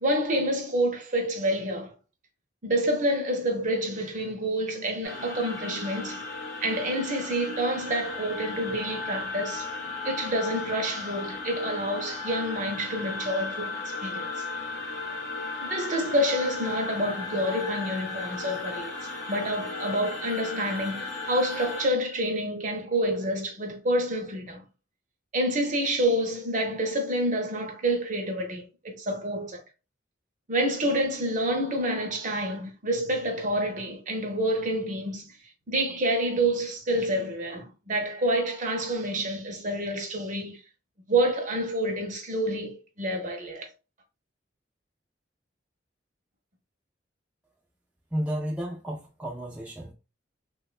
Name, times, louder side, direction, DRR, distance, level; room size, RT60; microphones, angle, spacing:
voice 1, 0.0-1.9 2.6-6.2 6.6-9.7 10.0-13.8 14.0-14.4 15.7-18.9 19.3-24.6 25.3-29.6 30.5-35.2 35.7-40.6 41.1-43.7, right 1 dB, 45° right, 0.6 m, -28 dB
sound 1, 5.0-21.9, left 3 dB, 60° left, 0.6 m, -35 dB
voice 2, 48.1-49.9, equal, 5° right, 0.3 m, -32 dB
3.4 x 2.2 x 2.3 m
head